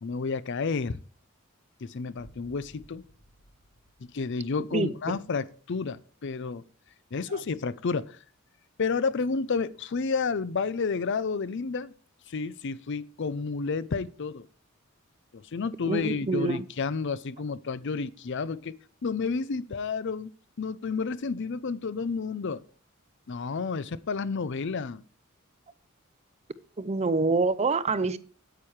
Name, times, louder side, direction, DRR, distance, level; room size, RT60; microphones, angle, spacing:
voice 1, 0.0-1.0 1.8-3.0 4.1-6.6 7.1-8.2 8.8-11.9 12.3-14.5 15.3-20.3 20.6-22.6 23.3-25.0, left 4 dB, 60° left, 0.5 m, -31 dB
Boom, 2.1-5.1, equal, 75° left, 1.9 m, -57 dB
voice 2, 4.7-5.2 15.9-16.7 26.8-28.2, right 3 dB, 30° right, 0.5 m, -26 dB
9.0 x 8.8 x 4.7 m
head